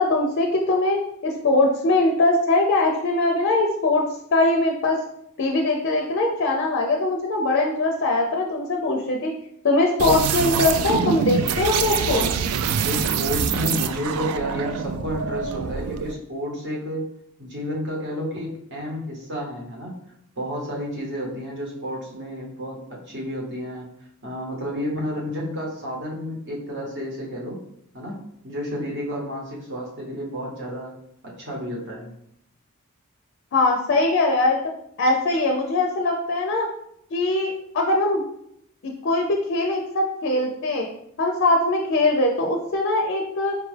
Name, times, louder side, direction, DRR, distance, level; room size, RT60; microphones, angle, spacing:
voice 1, 0.0-4.1 4.3-5.0 5.4-9.3 9.6-12.3 33.5-34.6 35.0-36.7 37.1-38.2 38.8-40.9 41.2-43.6, left 2 dB, 55° left, 2 dB, 0.4 m, -21 dB
sound 1, 10.0-16.2, right 7 dB, 90° right, 0.3 m, -25 dB
voice 2, 12.8-17.1 17.4-19.9 20.4-22.8 23.1-23.9 24.2-27.6 27.9-28.2 28.4-30.9 31.2-32.1, equal, 55° right, -2 dB, 1.0 m, -31 dB
4.7 x 2.3 x 3.2 m, 0.73 s
head